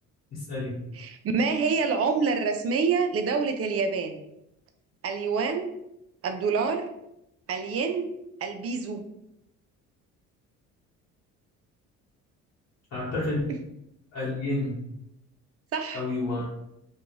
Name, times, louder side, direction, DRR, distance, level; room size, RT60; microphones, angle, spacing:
voice 1, 0.3-0.8 12.9-13.5 14.1-14.8 15.9-16.4, left 2 dB, 60° left, -8 dB, 1.1 m, -30 dB
voice 2, 0.9-4.2 5.0-5.7 6.2-6.9 7.5-8.1 8.4-9.0 15.7-16.0 16.4-16.5, right 5 dB, 45° right, 6 dB, 0.5 m, -27 dB
2.5 x 2.3 x 3.1 m, 0.82 s
supercardioid pair, 80°, 33 cm